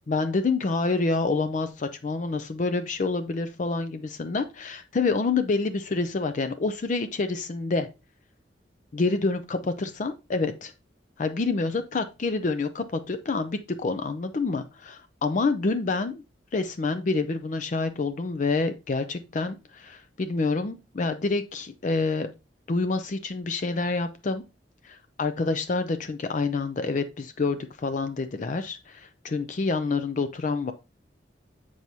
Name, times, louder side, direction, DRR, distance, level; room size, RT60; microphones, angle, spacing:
voice 1, 0.1-7.9 8.9-10.7 11.2-16.2 16.5-22.3 22.7-24.4 24.8-30.7, left 3 dB, 45° left, 9 dB, 0.4 m, -27 dB
7.6 x 4.7 x 2.7 m, 0.27 s
head